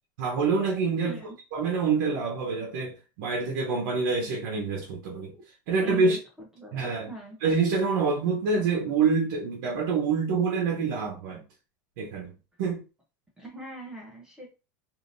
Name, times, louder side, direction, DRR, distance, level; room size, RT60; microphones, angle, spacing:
voice 1, 0.2-1.2 1.5-5.3 5.7-6.2 6.7-7.1 7.4-11.4 12.0-12.3 12.6-12.8, right 4 dB, 65° right, 0.9 m, -26 dB
voice 2, 1.0-1.4 5.3-5.4 5.7-7.4 13.4-14.5, right 1 dB, 5° right, 0.7 m, -42 dB
3.5 x 2.6 x 2.6 m
supercardioid pair, 175°, 10 cm